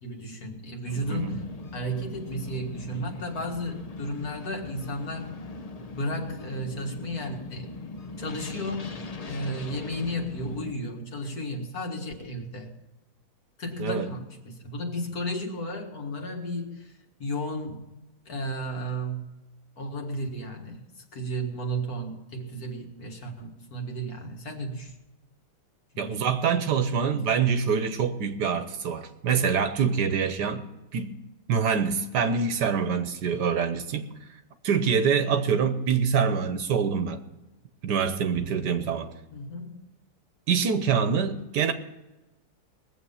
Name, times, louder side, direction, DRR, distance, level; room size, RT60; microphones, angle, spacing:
voice 1, 0.0-5.4 5.9-7.7 8.2-8.9 9.3-12.7 13.6-16.9 17.2-19.2 19.8-20.8 21.1-24.9 25.9-26.2 39.3-39.8, equal, 55° left, 2 dB, 2.2 m, -33 dB
sound 1, 0.9-10.7, left 3 dB, 75° left, 0.3 m, -40 dB
voice 2, 26.0-30.7 30.9-31.2 31.5-34.1 34.6-37.2 37.8-39.1 40.5-41.7, right 6 dB, 65° right, 9 dB, 1.4 m, -25 dB
20.5 x 7.8 x 5.6 m, 1.0 s
omnidirectional pair, 2.0 m